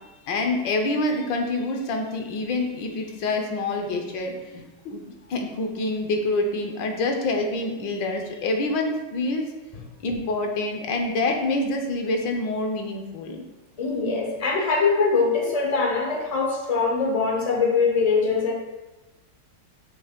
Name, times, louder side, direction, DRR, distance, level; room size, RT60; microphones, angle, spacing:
voice 1, 0.3-9.5 10.0-13.4, left 2 dB, 75° left, 3 dB, 1.5 m, -26 dB
voice 2, 13.8-18.5, left 4 dB, 50° left, 0 dB, 0.4 m, -22 dB
6.8 x 3.1 x 5.0 m, 1.1 s
omnidirectional pair, 2.0 m